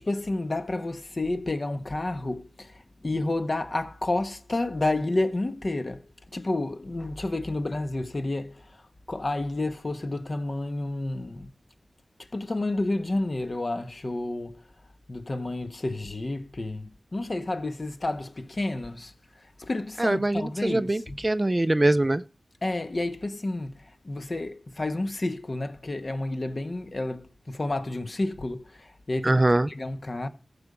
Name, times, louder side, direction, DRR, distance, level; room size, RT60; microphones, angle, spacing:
voice 1, 0.0-2.7 3.0-6.0 6.3-8.6 9.1-11.5 12.3-14.6 15.1-19.1 19.6-21.2 22.6-29.4 29.7-30.3, left 2 dB, 45° left, 1.4 m, -30 dB
voice 2, 20.0-22.2 29.2-29.7, right 1 dB, 25° right, 0.5 m, -23 dB
14.0 x 7.0 x 5.1 m
wide cardioid pair, 65°, 0 cm